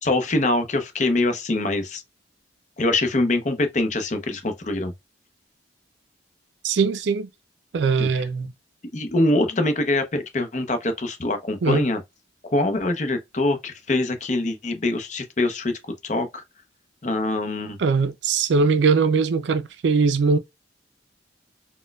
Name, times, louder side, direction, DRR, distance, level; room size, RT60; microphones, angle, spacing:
voice 1, 0.0-2.0 2.8-4.9 8.0-8.1 8.9-12.0 12.5-16.4 17.0-17.8, left 2 dB, 40° left, 0.7 m, -24 dB
voice 2, 6.6-7.3 7.7-8.5 11.6-11.9 17.8-20.4, right 4 dB, 75° right, 0.4 m, -21 dB
4.2 x 2.2 x 2.2 m
head